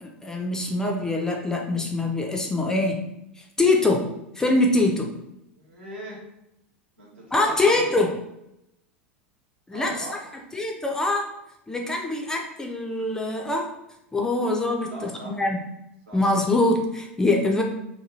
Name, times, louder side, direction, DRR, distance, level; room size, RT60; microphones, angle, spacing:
voice 1, 0.0-3.1 3.4-4.1 4.4-5.1 7.3-8.2 9.7-9.9 10.5-11.3 11.7-13.7 14.1-15.6 16.1-17.6, left 2 dB, 10° left, 0 dB, 0.3 m, -23 dB
voice 2, 5.5-6.2 7.0-8.0 9.7-10.4 14.9-15.4 16.1-16.2, equal, 70° right, -4 dB, 1.1 m, -40 dB
2.8 x 2.2 x 2.9 m, 0.85 s
figure-of-eight pair, 85°, 7 cm